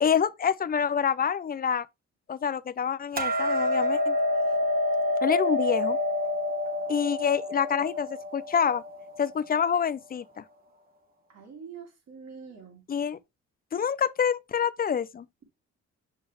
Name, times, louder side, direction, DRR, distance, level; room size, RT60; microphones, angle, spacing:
voice 1, 0.0-1.9 2.3-4.2 5.2-6.0 6.9-8.8 9.2-10.4 12.9-13.2 13.7-15.3, left 7 dB, 30° left, 0.5 m, -27 dB
Hammer, 3.2-9.4, left 1 dB, 30° right, 1.4 m, -27 dB
voice 2, 11.3-12.8, right 6 dB, 60° right, 2.8 m, -45 dB
6.4 x 6.1 x 3.1 m
cardioid pair, 90°, 30 cm